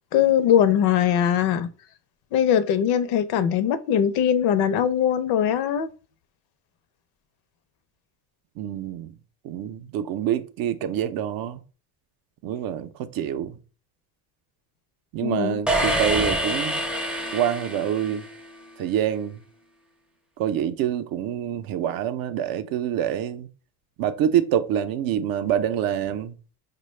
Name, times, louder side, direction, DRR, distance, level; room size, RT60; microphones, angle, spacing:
voice 1, 0.1-1.7 2.3-5.9 15.2-15.6, left 9 dB, 65° left, 0.6 m, -21 dB
voice 2, 8.6-9.2 9.4-11.6 12.4-13.6 15.1-16.8 17.3-18.3 18.8-19.4 20.4-23.5 24.0-26.3, right 10 dB, 55° right, 0.5 m, -26 dB
sound 1, 15.7-18.5, right 1 dB, ahead, 0.5 m, -26 dB
4.7 x 2.2 x 3.1 m
supercardioid pair, 100°, 42 cm